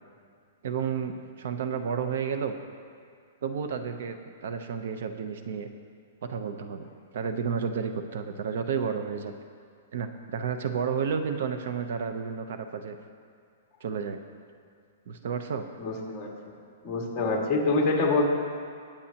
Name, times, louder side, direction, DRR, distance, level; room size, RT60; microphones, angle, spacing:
voice 1, 0.6-2.5 3.4-5.7 6.2-9.3 9.9-13.0 13.8-14.2 15.1-15.7, right 6 dB, 60° right, 7 dB, 0.7 m, -31 dB
voice 2, 15.8-16.3 16.8-18.3, left 3 dB, 20° left, -1 dB, 1.9 m, -25 dB
21.5 x 8.5 x 2.9 m, 2.2 s
hypercardioid pair, 170°, 0 cm